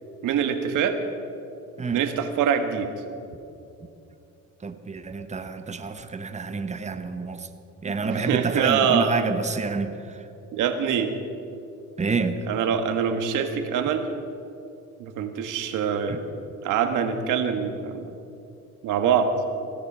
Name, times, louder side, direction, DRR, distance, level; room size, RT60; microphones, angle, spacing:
voice 1, 0.2-1.0 1.9-2.9 7.8-9.1 10.5-11.1 12.5-14.1 15.0-16.2 16.6-18.1 18.8-19.3, right 7 dB, 90° right, 7 dB, 1.4 m, -24 dB
voice 2, 4.6-7.5 7.8-9.9 12.0-12.4 16.1-16.2, right 4 dB, 25° right, 8 dB, 1.1 m, -28 dB
16.5 x 12.5 x 6.0 m, 2.7 s
cardioid pair, 90°, 30 cm